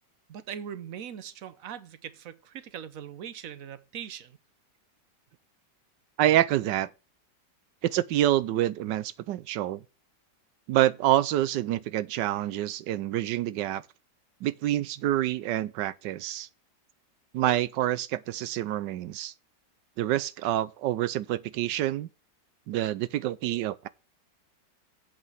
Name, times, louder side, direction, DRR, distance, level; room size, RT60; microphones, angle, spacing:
voice 1, 0.3-4.4, right 8 dB, 60° right, 1.1 m, -40 dB
voice 2, 6.2-6.9 7.8-9.8 10.7-13.8 14.4-16.5 17.3-19.3 20.0-22.1 22.7-23.9, right 13 dB, 80° right, 1.3 m, -27 dB
8.2 x 5.3 x 7.2 m
omnidirectional pair, 1.9 m